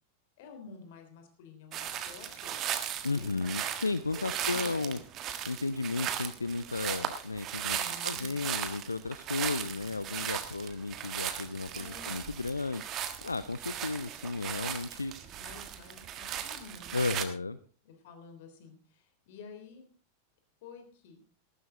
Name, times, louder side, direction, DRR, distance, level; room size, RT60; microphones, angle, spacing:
voice 1, 0.4-2.6 3.1-3.5 4.1-5.0 7.6-8.4 11.7-12.2 15.2-17.2 17.8-19.9 20.6-21.2, left 4 dB, 50° left, 6 dB, 3.3 m, -50 dB
sound 1, 1.7-17.3, right 10 dB, 35° right, 1.4 m, -37 dB
voice 2, 3.0-5.0 5.5-12.9 13.2-15.1 16.9-17.6, left 3 dB, 80° left, 16 dB, 0.5 m, -34 dB
14.5 x 12.5 x 3.8 m, 0.40 s
figure-of-eight pair, 90°, 0 cm